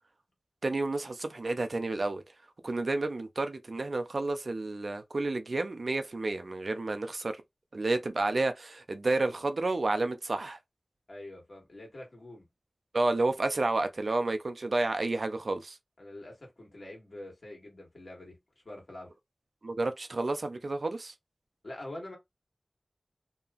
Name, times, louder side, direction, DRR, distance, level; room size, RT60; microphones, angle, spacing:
voice 1, 0.6-2.2 2.6-7.4 7.7-10.6 12.9-15.8 19.6-21.1, right 2 dB, 70° right, 0.4 m, -30 dB
voice 2, 11.1-12.5 16.0-18.4 18.6-19.1 21.6-22.2, left 1 dB, 65° left, 1.6 m, -45 dB
2.8 x 2.4 x 2.3 m
wide cardioid pair, 45°, 0 cm